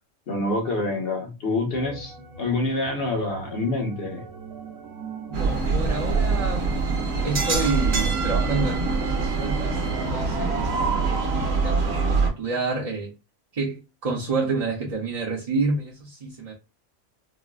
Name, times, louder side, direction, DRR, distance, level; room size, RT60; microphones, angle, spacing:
voice 1, 0.3-4.2, left 2 dB, 50° left, 1.1 m, -27 dB
sound 1, 1.7-11.1, right 5 dB, 90° right, 1.0 m, -40 dB
voice 2, 5.3-6.7 7.2-10.7 11.0-13.1 13.5-16.5, right 3 dB, 40° right, 0.6 m, -29 dB
sound 2, 5.3-12.3, right 4 dB, 60° right, 1.0 m, -24 dB
4.0 x 2.0 x 2.3 m
omnidirectional pair, 1.3 m